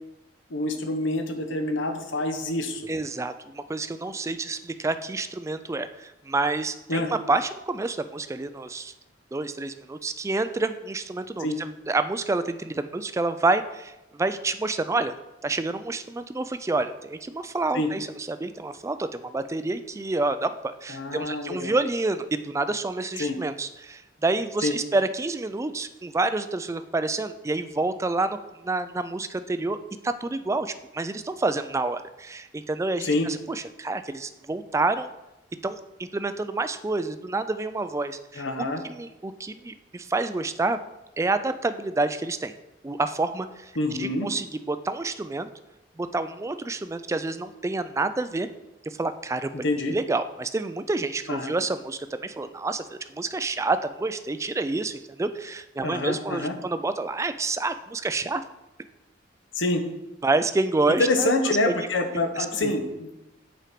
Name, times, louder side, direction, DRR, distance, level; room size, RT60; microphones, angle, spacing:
voice 1, 0.5-2.8 6.9-7.1 11.4-11.6 17.7-17.9 20.9-21.7 23.2-23.4 24.6-24.7 33.0-33.3 38.4-38.8 43.8-44.3 49.5-49.9 51.3-51.5 55.8-56.5 59.5-59.8 61.0-63.1, left 2 dB, 80° left, 6 dB, 1.0 m, -26 dB
voice 2, 2.9-8.9 9.3-15.2 15.4-29.8 30.0-35.1 35.6-40.8 41.2-42.5 42.8-43.7 44.0-45.5 46.0-48.5 48.9-49.6 49.9-58.4 60.2-61.7 62.4-62.7, right 3 dB, 15° right, 11 dB, 0.3 m, -28 dB
7.6 x 4.4 x 5.1 m, 0.97 s
head